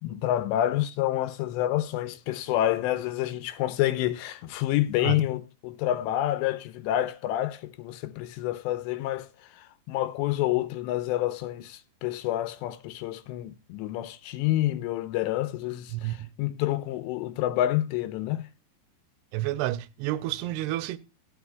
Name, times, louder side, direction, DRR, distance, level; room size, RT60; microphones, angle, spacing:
voice 1, 0.0-9.3 9.6-18.5, left 13 dB, 90° left, 3.0 m, -28 dB
voice 2, 15.9-16.3 19.3-21.0, right 15 dB, 80° right, 2.6 m, -30 dB
15.5 x 10.5 x 2.3 m
omnidirectional pair, 5.0 m